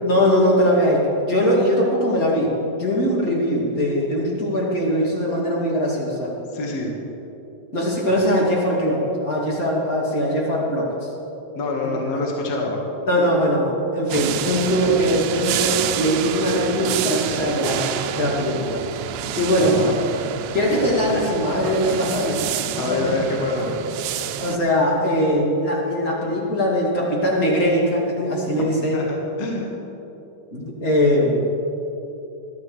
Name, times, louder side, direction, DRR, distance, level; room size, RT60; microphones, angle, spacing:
voice 1, 0.0-6.3 7.7-10.9 13.1-17.9 18.1-18.8 19.4-19.8 20.5-22.4 22.7-23.1 24.4-29.0 30.5-31.4, equal, 30° left, -4 dB, 2.6 m, -21 dB
voice 2, 6.5-6.9 11.6-12.8 19.5-20.0 22.8-23.7 28.9-29.6, left 2 dB, 55° left, -1 dB, 2.5 m, -26 dB
sound 1, 14.1-24.6, right 10 dB, 85° right, 2.3 m, -28 dB
21.5 x 13.5 x 3.3 m, 3.0 s
omnidirectional pair, 3.8 m